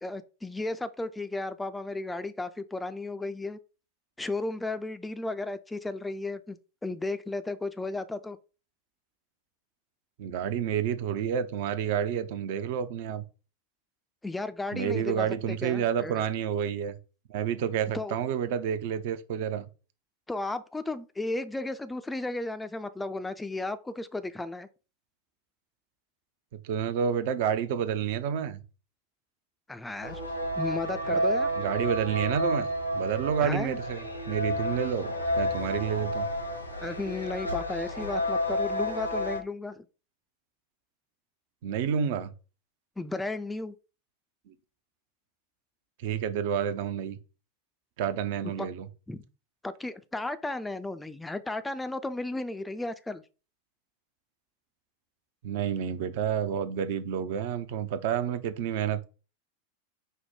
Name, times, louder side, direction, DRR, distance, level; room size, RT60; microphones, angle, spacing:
voice 1, 0.0-3.6 4.2-8.4 14.2-16.2 17.9-18.1 20.3-24.7 29.7-30.2 30.5-31.5 33.4-33.8 36.8-39.9 43.0-43.7 48.6-48.7 49.1-49.2 49.6-53.2, left 2 dB, 5° left, 0.3 m, -34 dB
voice 2, 10.2-13.2 14.7-16.9 17.3-19.7 26.6-28.6 31.1-31.2 31.6-32.7 32.9-34.0 34.3-36.3 41.6-42.3 44.5-44.6 46.0-47.2 48.0-48.9 55.4-59.1, right 8 dB, 50° right, 0.5 m, -29 dB
sound 1, 30.0-39.4, equal, 85° left, 0.9 m, -31 dB
5.0 x 2.1 x 4.5 m
figure-of-eight pair, 90°, 0 cm